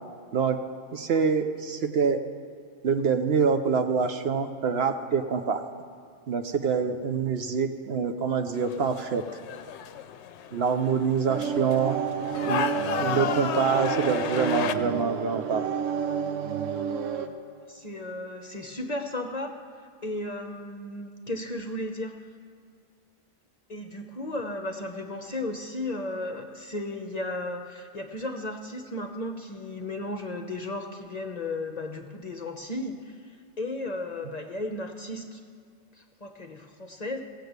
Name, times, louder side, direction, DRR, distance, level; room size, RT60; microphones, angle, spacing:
voice 1, 0.9-2.2 2.8-5.7 6.3-9.2 10.5-12.0 12.4-12.7 13.0-15.6, right 6 dB, 60° right, 7 dB, 0.9 m, -25 dB
sound 1, 8.5-14.7, left 6 dB, 70° left, 0.9 m, -33 dB
sound 2, 11.3-17.3, right 7 dB, 85° right, 1.2 m, -30 dB
voice 2, 17.7-19.6 20.0-22.1 23.7-35.4 36.0-37.2, left 1 dB, 40° left, 4 dB, 0.8 m, -35 dB
16.5 x 6.6 x 8.0 m, 2.3 s
omnidirectional pair, 1.3 m